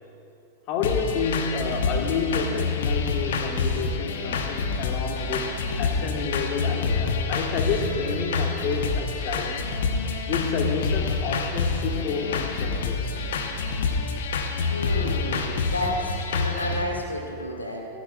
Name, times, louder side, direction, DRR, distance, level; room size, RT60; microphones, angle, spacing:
voice 1, 0.7-9.6 10.3-13.1, left 5 dB, 40° left, 4 dB, 1.5 m, -29 dB
sound 1, 0.8-16.8, left 4 dB, 60° left, 1.1 m, -27 dB
voice 2, 14.7-17.9, left 1 dB, 80° left, 0 dB, 2.2 m, -31 dB
26.5 x 13.0 x 2.4 m, 2.7 s
figure-of-eight pair, 90°, 0 cm